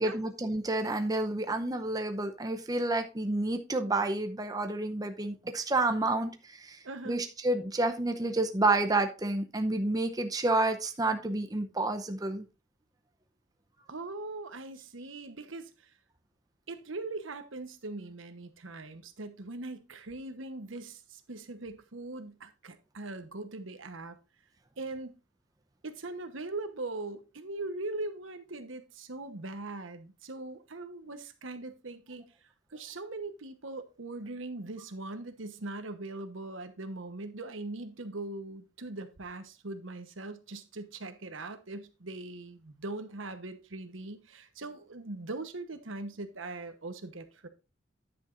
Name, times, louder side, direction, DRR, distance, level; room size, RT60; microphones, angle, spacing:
voice 1, 0.0-6.3 6.6-6.8 7.1-12.4, right 2 dB, 20° right, 0.7 m, -29 dB
voice 2, 6.8-7.2 13.9-15.9 16.7-24.2 24.8-25.2 25.8-32.3 32.7-47.5, right 2 dB, 85° right, 1.1 m, -41 dB
10.0 x 8.7 x 2.6 m
head